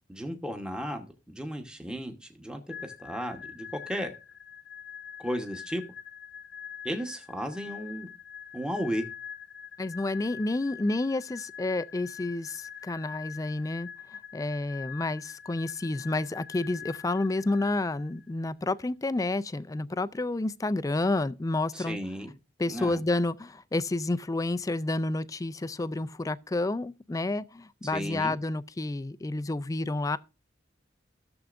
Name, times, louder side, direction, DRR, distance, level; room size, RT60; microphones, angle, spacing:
voice 1, 0.1-4.1 5.2-5.8 6.8-8.1 8.5-9.1 21.7-22.3 22.7-23.0 27.9-28.4, equal, 5° right, 1.1 m, -34 dB
sound 1, 2.7-18.3, left 8 dB, 60° left, 1.0 m, -44 dB
voice 2, 9.8-13.9 14.3-22.0 22.6-30.2, left 2 dB, 20° left, 0.4 m, -30 dB
15.5 x 7.0 x 2.5 m
head